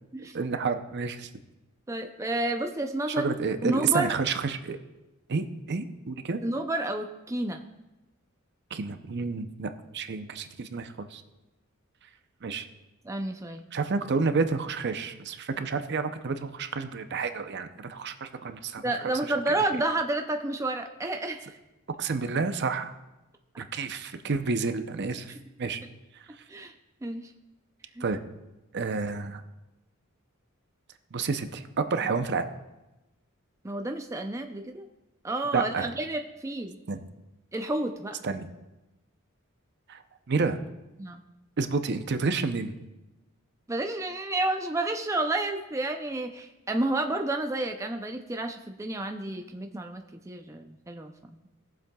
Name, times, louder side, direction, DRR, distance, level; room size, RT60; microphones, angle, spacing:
voice 1, 0.3-1.3 3.1-4.8 5.3-6.4 8.7-11.2 12.4-12.7 13.7-19.1 19.5-19.6 22.0-22.9 23.6-25.8 28.0-28.2 28.7-29.4 31.1-32.5 35.5-35.9 36.9-37.0 38.2-38.5 39.9-40.0 40.3-40.6 41.6-42.7, right 4 dB, 55° right, 8 dB, 0.6 m, -30 dB
voice 2, 1.9-3.3 3.6-4.2 6.4-7.6 13.1-13.6 18.8-21.5 26.5-26.7 27.0-27.3 28.0-28.1 33.6-34.8 35.2-36.8 37.5-38.2 41.0-41.2 43.7-51.4, right 2 dB, 15° right, 5 dB, 0.5 m, -30 dB
20.0 x 7.4 x 2.3 m, 1.0 s
head